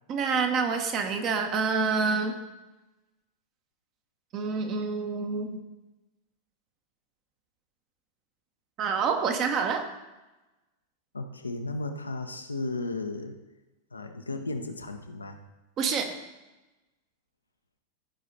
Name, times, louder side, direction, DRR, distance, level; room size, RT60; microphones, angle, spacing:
voice 1, 0.1-2.3 4.3-5.6 8.8-9.8 15.8-16.1, right 5 dB, 35° right, 5 dB, 1.3 m, -27 dB
voice 2, 11.1-13.4 13.9-15.4, left 2 dB, 80° left, 6 dB, 0.8 m, -34 dB
15.0 x 5.1 x 4.2 m, 1.1 s
figure-of-eight pair, 90°, 0 cm